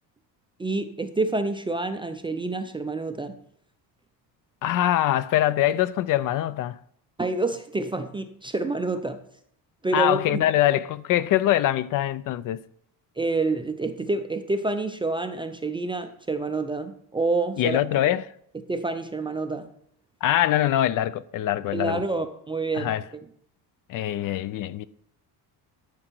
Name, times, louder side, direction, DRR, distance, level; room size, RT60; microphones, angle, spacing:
voice 1, 0.6-3.4 7.2-9.2 9.8-10.5 13.2-17.8 18.5-19.7 21.7-23.0, right 3 dB, 15° right, 0.4 m, -28 dB
voice 2, 4.6-6.8 9.9-12.6 17.6-18.3 20.2-22.0 22.7-23.0 23.9-24.9, left 13 dB, 50° left, 0.4 m, -23 dB
13.0 x 6.4 x 4.5 m
cardioid pair, 155°, 42 cm